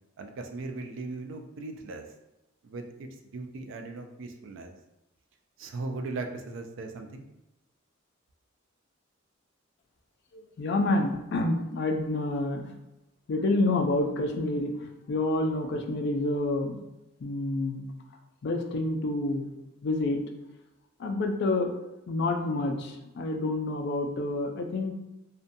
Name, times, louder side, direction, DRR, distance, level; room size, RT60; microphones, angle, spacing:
voice 1, 0.2-2.1 2.6-4.7 5.6-7.3, right 3 dB, 60° right, 5 dB, 0.3 m, -38 dB
voice 2, 10.3-12.8 13.3-16.8 17.2-17.9 18.4-19.5 19.8-20.2 21.0-21.8 22.1-24.9, left 2 dB, 55° left, 4 dB, 0.3 m, -28 dB
2.6 x 2.1 x 2.6 m, 0.94 s
head